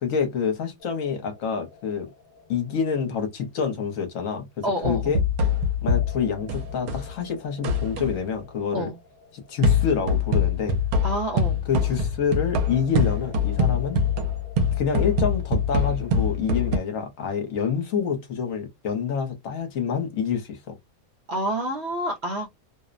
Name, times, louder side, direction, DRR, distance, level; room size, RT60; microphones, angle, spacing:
voice 1, 0.0-2.1 2.5-4.5 4.8-5.2 5.8-8.9 9.5-10.8 11.7-14.0 14.8-20.8, left 6 dB, 65° left, 1.0 m, -27 dB
sound 1, 0.8-5.0 5.9-11.9 12.7-18.1, left 3 dB, 45° left, 0.8 m, -50 dB
voice 2, 4.6-5.1 8.7-9.0 11.0-11.6 21.3-22.5, right 1 dB, 60° right, 0.7 m, -28 dB
sound 2, 4.8-7.1 7.6-8.2 9.6-16.8, left 3 dB, 85° right, 1.1 m, -24 dB
2.6 x 2.0 x 2.4 m
omnidirectional pair, 1.5 m